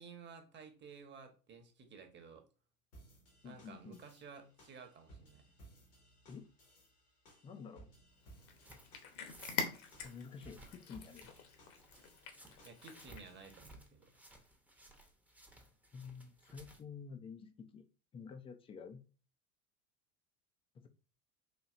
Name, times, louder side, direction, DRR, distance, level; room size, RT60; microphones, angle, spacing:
voice 1, 0.0-2.4 3.4-5.4 12.6-14.1, right 5 dB, 25° right, 5 dB, 1.0 m, -54 dB
sound 1, 2.9-13.6, right 2 dB, 85° left, 1.8 m, -62 dB
voice 2, 3.4-4.0 6.3-6.4 7.4-7.9 10.0-11.3 15.9-17.8 18.1-19.0 20.7-20.9, left 6 dB, 15° left, 7 dB, 0.3 m, -50 dB
Cat, 8.2-13.5, left 6 dB, 50° left, 1.0 m, -45 dB
sound 2, 8.6-16.8, right 1 dB, 5° right, 0.7 m, -60 dB
4.3 x 2.8 x 2.4 m, 0.35 s
hypercardioid pair, 80°, 43 cm